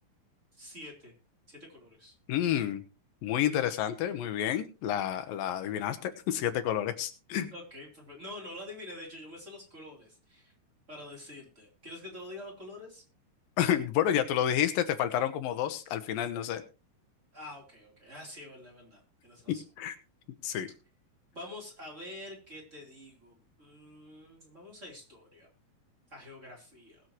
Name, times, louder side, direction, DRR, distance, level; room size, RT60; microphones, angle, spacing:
voice 1, 0.5-1.1 1.5-2.2 7.5-10.5 10.9-13.0 17.3-19.6 21.3-25.5 26.1-27.0, left 1 dB, 20° right, -1 dB, 3.9 m, -46 dB
voice 2, 2.3-2.8 3.2-7.5 13.6-16.6 19.8-20.0 20.4-20.7, left 10 dB, 85° left, 9 dB, 2.8 m, -29 dB
20.5 x 7.5 x 3.1 m, 0.33 s
omnidirectional pair, 4.0 m